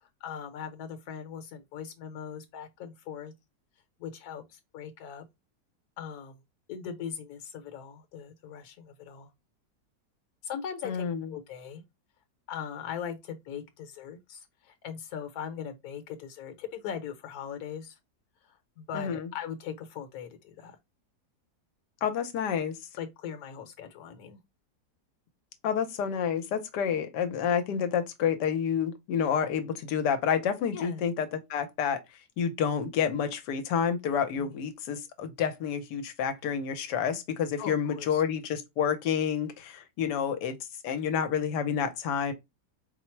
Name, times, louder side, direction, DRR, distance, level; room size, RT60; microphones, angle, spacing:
voice 1, 0.0-3.3 4.0-5.2 6.0-6.4 6.7-9.3 10.4-11.0 11.3-11.8 12.5-18.0 18.4-20.8 23.0-24.4 26.9-27.0 30.7-31.1 34.4-34.5 37.6-38.2, left 8 dB, 65° left, 1.3 m, -40 dB
voice 2, 10.8-11.3 18.9-19.3 22.0-22.7 25.6-32.0 32.4-40.6 40.8-42.3, left 7 dB, 85° left, 1.3 m, -29 dB
4.3 x 2.0 x 4.4 m
omnidirectional pair, 1.8 m